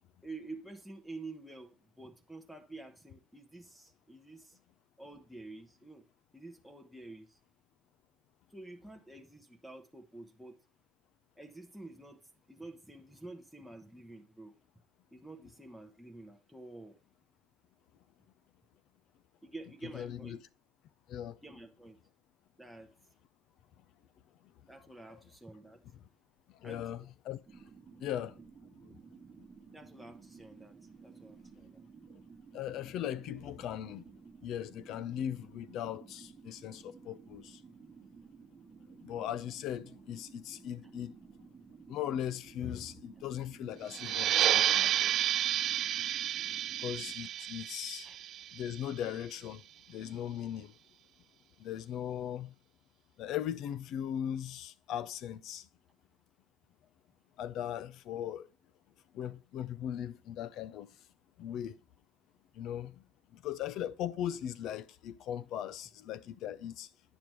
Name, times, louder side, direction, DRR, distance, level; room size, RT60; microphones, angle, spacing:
voice 1, 0.2-4.6 5.0-6.0 6.3-7.4 8.5-10.6 11.4-12.2 12.5-14.5 15.1-17.0 19.4-20.4 21.4-22.0 22.6-22.9 24.7-25.8 26.6-26.9 28.9-29.0 29.7-30.8 31.0-31.8 48.0-48.2, right 2 dB, ahead, 0.9 m, -49 dB
voice 2, 19.9-20.4 21.1-21.4 25.1-25.2 26.6-27.4 28.0-28.3 32.5-34.0 34.4-37.6 39.0-41.1 41.9-45.1 46.8-48.1 48.5-49.6 49.9-50.7 51.6-52.5 53.2-55.7 57.4-58.5 59.1-60.9 61.4-61.8 62.5-62.9 63.3-66.9, left 10 dB, 65° left, 0.5 m, -38 dB
sound 1, 27.5-47.1, right 5 dB, 30° right, 1.1 m, -55 dB
sound 2, 43.9-49.1, right 11 dB, 55° right, 0.3 m, -31 dB
9.0 x 6.8 x 3.0 m
cardioid pair, 110°, 0 cm